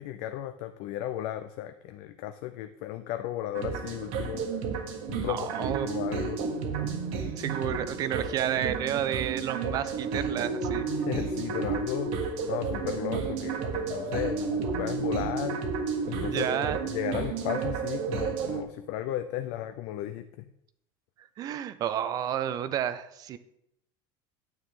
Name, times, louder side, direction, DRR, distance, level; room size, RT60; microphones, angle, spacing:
voice 1, 0.0-4.5 5.1-6.4 11.0-12.1 12.5-15.6 16.1-20.5, left 12 dB, 55° left, 8 dB, 0.5 m, -35 dB
sound 1, 3.5-18.6, right 5 dB, 50° right, 1.4 m, -32 dB
voice 2, 5.3-5.9 7.4-10.9 16.2-16.8 21.4-23.4, right 10 dB, 30° right, 13 dB, 0.5 m, -31 dB
9.3 x 8.4 x 3.7 m, 0.77 s
cardioid pair, 165°, 12 cm